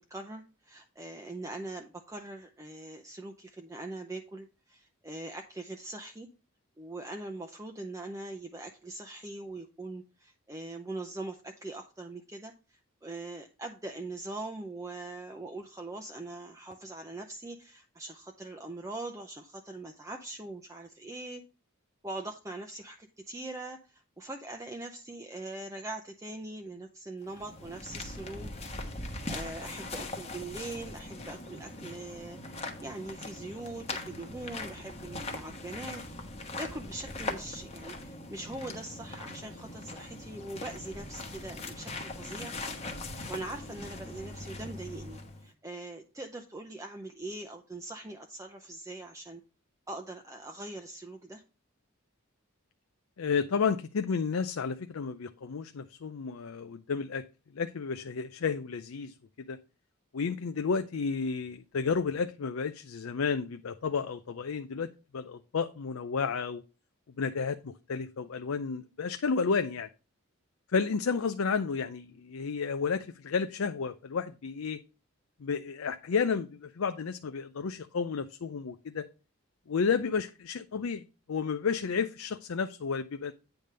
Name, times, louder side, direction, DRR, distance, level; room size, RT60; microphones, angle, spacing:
voice 1, 0.0-6.3 6.8-21.4 22.0-28.5 29.0-36.0 36.6-42.5 43.3-49.4 49.9-51.4, right 2 dB, 15° right, 0.6 m, -42 dB
sound 1, 27.2-45.5, left 2 dB, 30° left, 1.1 m, -41 dB
voice 2, 53.2-57.2 57.5-59.1 59.5-59.6 60.1-66.6 67.2-69.9 70.7-74.8 75.4-79.1 79.7-81.0 81.3-83.3, left 5 dB, 80° left, 0.5 m, -31 dB
9.1 x 3.5 x 6.5 m
head